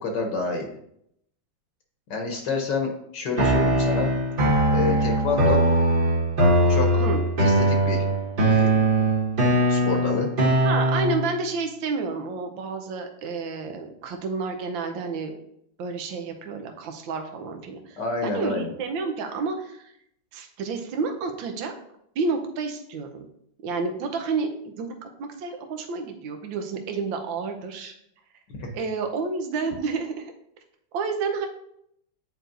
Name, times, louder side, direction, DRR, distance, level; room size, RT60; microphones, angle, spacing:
voice 1, 0.0-0.7 2.1-4.1 4.7-5.6 6.7-7.0 7.4-8.0 8.4-8.7 9.7-10.3 18.0-18.7 28.6-28.7, left 3 dB, 70° left, 3 dB, 1.5 m, -28 dB
sound 1, 3.4-11.4, right 1 dB, 35° right, 1.0 m, -21 dB
voice 2, 10.6-15.3 15.8-18.0 18.2-19.9 20.3-21.7 22.1-23.3 23.6-27.9 28.7-30.3 30.9-31.5, right 4 dB, 85° right, 5 dB, 1.6 m, -30 dB
9.4 x 4.6 x 2.6 m, 0.73 s
omnidirectional pair, 2.0 m